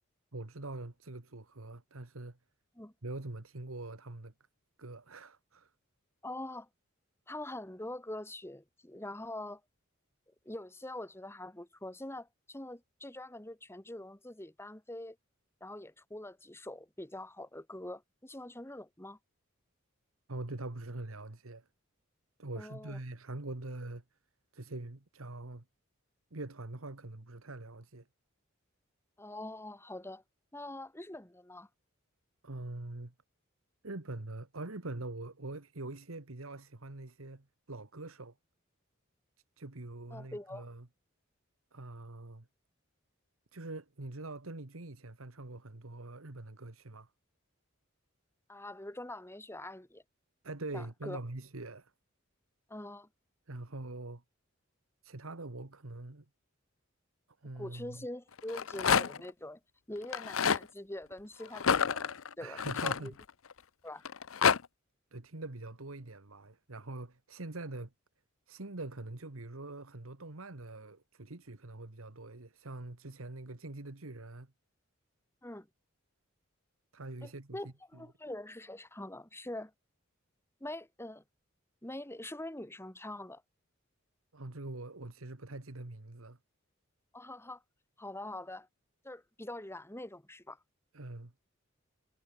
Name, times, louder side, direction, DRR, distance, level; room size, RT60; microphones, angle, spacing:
voice 1, 0.3-2.4 3.0-4.3 4.8-5.7 20.3-21.7 22.4-24.0 24.5-25.7 26.3-28.1 32.4-33.1 33.8-38.4 39.6-40.9 41.7-42.5 43.5-47.1 50.4-51.9 53.5-54.2 55.0-56.3 57.4-58.1 62.4-63.2 65.1-67.9 68.5-74.5 76.9-78.1 84.3-86.4 90.9-91.3, right 2 dB, 85° right, 1.7 m, -44 dB
voice 2, 6.2-6.7 7.3-9.6 10.3-15.2 15.6-19.2 22.6-23.0 29.2-30.2 30.5-31.7 40.1-40.7 48.5-50.0 50.7-51.2 52.7-53.1 57.6-59.6 59.9-63.1 63.8-64.0 75.4-75.7 77.2-79.7 80.6-81.2 81.8-83.4 87.1-87.6 88.0-88.7 89.0-90.6, left 1 dB, 10° left, 1.9 m, -44 dB
Rattle, 58.4-59.3 60.0-60.6 61.5-63.5 64.0-64.6, left 7 dB, 75° left, 0.7 m, -28 dB
head